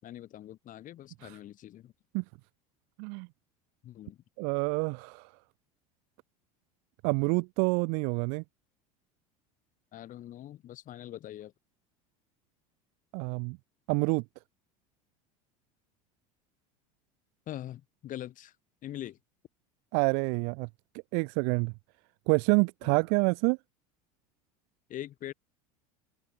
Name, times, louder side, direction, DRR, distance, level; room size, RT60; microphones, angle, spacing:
voice 1, 0.0-1.9 3.8-4.2 9.9-11.5 17.5-18.5 18.8-19.2 22.8-23.0 24.9-25.3, left 12 dB, 45° left, 4.9 m, -43 dB
voice 2, 4.4-5.3 7.0-8.4 13.1-13.6 13.9-14.2 19.9-20.7 21.1-21.7 22.3-23.6, right 39 dB, 65° right, 0.5 m, -27 dB
open air
hypercardioid pair, 90°, 18 cm